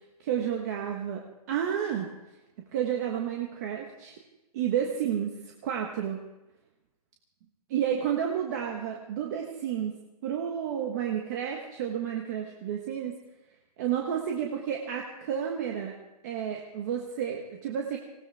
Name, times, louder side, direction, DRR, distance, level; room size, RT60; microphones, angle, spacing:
voice 1, 0.2-2.1 2.7-4.1 4.5-5.3 5.6-6.2 7.7-9.9 10.2-13.2 13.8-16.0 16.2-18.0, right 9 dB, 25° right, 1 dB, 1.4 m, -31 dB
19.5 x 18.0 x 3.5 m, 0.98 s
hypercardioid pair, 170°, 20 cm